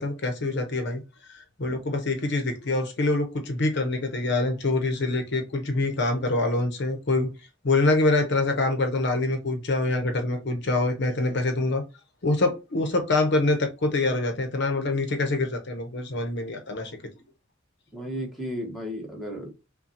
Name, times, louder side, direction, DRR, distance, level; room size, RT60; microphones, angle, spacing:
voice 1, 0.0-7.3 7.6-11.8 12.2-16.9, left 2 dB, 60° left, 0.8 m, -25 dB
voice 2, 17.9-19.5, equal, ahead, 1.1 m, -34 dB
5.7 x 2.3 x 2.7 m
head